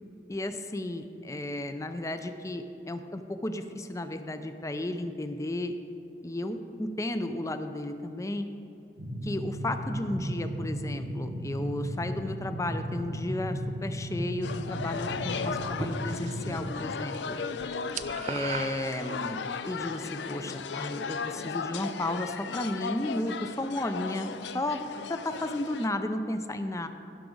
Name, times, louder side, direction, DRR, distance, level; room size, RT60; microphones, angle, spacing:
voice 1, 0.3-5.8 6.2-8.5 9.2-17.4 18.2-24.3 24.5-24.8 25.1-26.9, left 1 dB, 20° left, 8 dB, 0.5 m, -33 dB
sound 1, 9.0-16.6, equal, 80° right, 1.5 m, -35 dB
sound 2, 14.4-25.9, left 5 dB, 75° left, 0.4 m, -36 dB
sound 3, 15.6-16.6 16.9-17.2 17.5-19.5, right 6 dB, 40° right, 0.3 m, -38 dB
16.0 x 6.0 x 3.9 m, 2.8 s
head